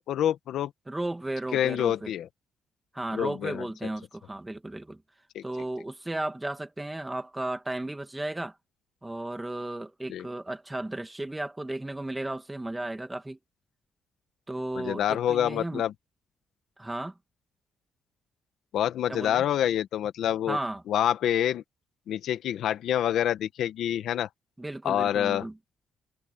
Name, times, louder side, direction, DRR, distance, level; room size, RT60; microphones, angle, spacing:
voice 1, 0.0-0.7 1.5-2.3 3.1-3.6 5.3-5.4 10.1-10.2 14.7-15.9 18.7-20.6 20.9-21.6 22.1-24.3 24.8-25.4, left 10 dB, 75° left, 1.4 m, -27 dB
voice 2, 0.9-2.1 2.9-5.0 5.4-8.5 9.0-13.4 14.5-15.8 16.8-17.1 19.1-19.4 20.5-20.8 24.6-25.6, right 1 dB, 10° right, 2.4 m, -34 dB
cardioid pair, 90°, 0 cm